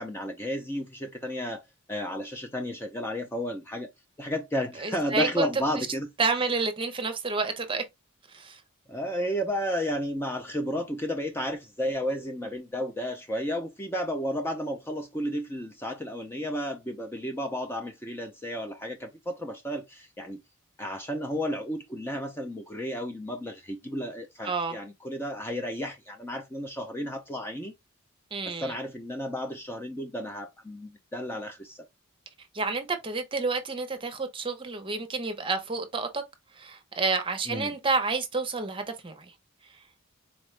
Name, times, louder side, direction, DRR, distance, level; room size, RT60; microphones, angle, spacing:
voice 1, 0.0-1.6 1.9-3.9 4.2-6.1 8.9-20.4 20.8-27.7 28.5-31.9 37.5-37.7, equal, 10° left, 0.4 m, -32 dB
voice 2, 4.8-5.5 5.8-5.9 6.2-7.9 8.3-8.6 24.4-24.8 28.3-28.7 32.5-36.2 36.6-39.3, right 4 dB, 25° right, 0.7 m, -29 dB
4.2 x 2.2 x 3.1 m
head